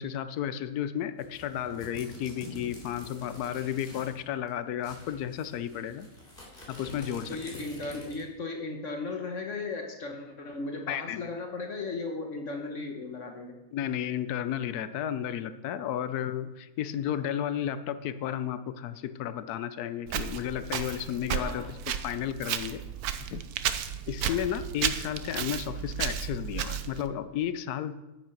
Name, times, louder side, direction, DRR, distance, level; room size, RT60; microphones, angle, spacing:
voice 1, 0.0-6.1 6.7-7.6 10.9-11.3 13.7-21.7 22.0-22.8 23.3-23.4 24.1-28.0, left 10 dB, 90° left, 13 dB, 1.2 m, -33 dB
sound 1, 1.2-4.2 4.5-4.6 4.8-8.3, left 1 dB, 35° left, 3.0 m, -47 dB
voice 2, 7.3-13.6 21.4-21.7 24.2-24.4, left 3 dB, 55° left, 3 dB, 1.4 m, -36 dB
Walk footsteps, 20.1-27.1, right 9 dB, 80° right, 1.2 m, -33 dB
9.4 x 8.8 x 5.8 m, 1.0 s
omnidirectional pair, 1.6 m